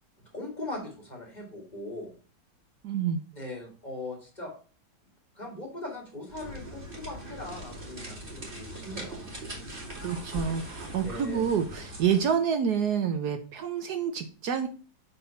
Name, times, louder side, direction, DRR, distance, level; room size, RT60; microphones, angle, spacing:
voice 1, 0.3-2.1 3.3-4.5 5.3-9.2 11.0-11.5, left 2 dB, 25° left, 0 dB, 2.7 m, -40 dB
voice 2, 2.8-3.2 9.7-14.7, right 7 dB, 70° right, 8 dB, 1.2 m, -28 dB
sound 1, 6.3-12.3, equal, 30° right, 2.3 m, -41 dB
7.1 x 4.1 x 5.7 m, 0.38 s
omnidirectional pair, 1.9 m